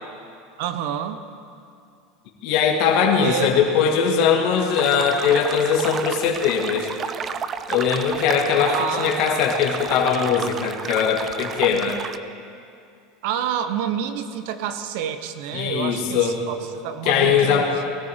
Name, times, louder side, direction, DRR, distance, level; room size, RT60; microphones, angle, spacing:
voice 1, 0.6-1.2 3.2-3.5 8.7-9.3 13.2-17.7, right 9 dB, 70° right, 9 dB, 0.9 m, -28 dB
voice 2, 2.4-6.9 7.7-12.0 15.5-16.5 17.0-17.7, left 7 dB, 60° left, 0 dB, 1.8 m, -20 dB
sound 1, 4.7-12.2, right 7 dB, 30° right, 0.5 m, -32 dB
19.0 x 13.0 x 3.6 m, 2.5 s
supercardioid pair, 120°, 0 cm